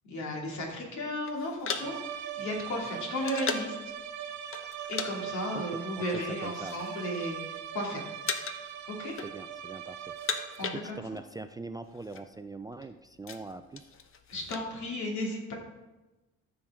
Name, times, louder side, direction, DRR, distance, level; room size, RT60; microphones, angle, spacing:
voice 1, 0.1-3.8 4.9-8.1 8.9-9.2 10.6-11.0 14.3-15.5, left 1 dB, 70° left, -1 dB, 2.7 m, -34 dB
sound 1, 1.3-3.8 4.5-5.1 5.4-5.6 6.3-7.0 7.3-7.8 8.2-8.7 9.0-9.7 10.0-11.3 11.6-11.7 11.9-12.2 12.7-14.7, left 6 dB, 45° left, 0.9 m, -37 dB
sound 2, 1.7-10.9, right 10 dB, 70° right, 0.9 m, -40 dB
voice 2, 6.0-6.8 9.2-10.1 10.7-13.9, right 3 dB, 15° right, 8 dB, 0.3 m, -42 dB
14.0 x 6.0 x 3.7 m, 1.1 s
cardioid pair, 110°, 30 cm